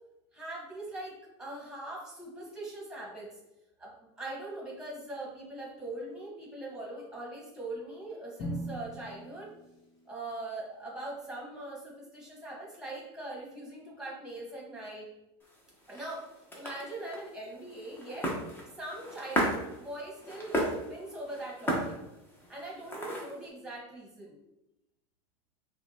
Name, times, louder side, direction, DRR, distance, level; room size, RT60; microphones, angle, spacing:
voice 1, 0.3-3.3 3.8-9.5 10.1-15.1 15.9-16.2 16.5-18.3 18.8-20.6 20.8-21.9 22.5-24.4, right 2 dB, 5° right, -3 dB, 1.4 m, -41 dB
Drum, 8.4-10.4, right 1 dB, 35° left, 1.1 m, -41 dB
sound 1, 15.4-23.5, equal, 15° left, 1.0 m, -36 dB
5.6 x 2.3 x 2.8 m, 0.92 s
supercardioid pair, 125°, 14 cm